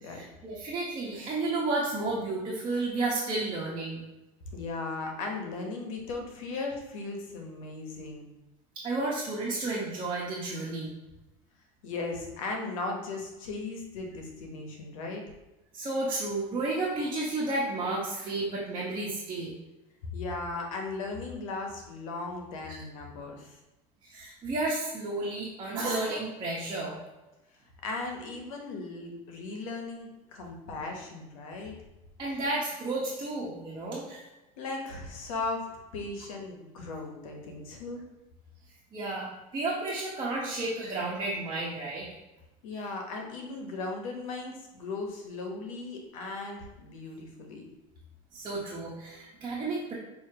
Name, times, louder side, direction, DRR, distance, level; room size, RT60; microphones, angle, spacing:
voice 1, 0.0-4.0 8.8-10.9 15.7-19.5 22.7-22.8 24.1-27.0 32.2-34.3 38.9-42.1 48.3-49.9, right 2 dB, 30° right, -6 dB, 1.2 m, -32 dB
voice 2, 4.5-8.3 11.8-15.2 20.1-23.6 27.8-31.7 34.6-38.0 42.6-47.6, left 3 dB, 80° left, 2 dB, 1.1 m, -37 dB
6.4 x 2.8 x 2.9 m, 1.0 s
supercardioid pair, 100°, 17 cm